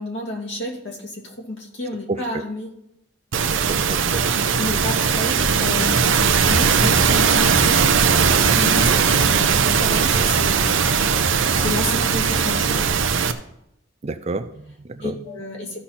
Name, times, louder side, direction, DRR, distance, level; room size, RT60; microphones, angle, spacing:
voice 1, 0.0-2.7 4.5-7.8 8.1-11.0 11.6-12.9 15.0-15.8, left 1 dB, 55° left, 0 dB, 2.5 m, -31 dB
voice 2, 2.1-2.5 3.7-4.5 14.0-15.2, right 3 dB, 30° right, 10 dB, 0.4 m, -30 dB
sound 1, 3.3-13.3, right 6 dB, 65° right, 0.7 m, -18 dB
14.0 x 5.8 x 4.3 m, 0.80 s
head